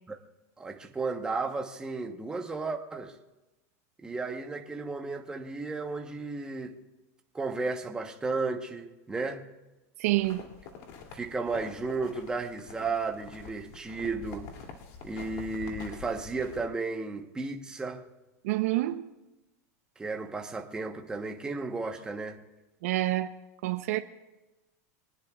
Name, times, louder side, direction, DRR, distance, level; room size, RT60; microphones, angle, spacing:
voice 1, 0.6-3.1 4.0-6.8 7.3-9.4 11.1-14.5 15.0-18.1 20.0-22.4, right 3 dB, 10° right, 1.1 m, -34 dB
voice 2, 10.0-10.4 18.4-19.1 22.8-23.3 23.6-24.0, right 17 dB, 70° right, 0.7 m, -27 dB
sound 1, 10.1-16.6, left 5 dB, 50° left, 2.7 m, -46 dB
25.5 x 19.0 x 2.4 m
supercardioid pair, 150°, 8 cm